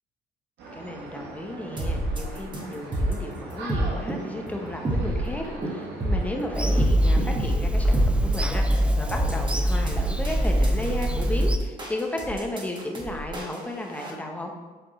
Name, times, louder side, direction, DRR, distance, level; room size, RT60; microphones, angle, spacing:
sound 1, 0.6-6.8, right 3 dB, 85° right, 1.5 m, -40 dB
voice 1, 0.7-14.5, left 1 dB, 10° left, 2 dB, 0.9 m, -34 dB
sound 2, 1.8-14.1, right 1 dB, 25° right, 1.3 m, -29 dB
Bird vocalization bird call bird song / Telephone, 6.5-11.6, equal, 5° right, 0.4 m, -23 dB
8.1 x 3.5 x 4.2 m, 1.4 s
cardioid pair, 110°, 17 cm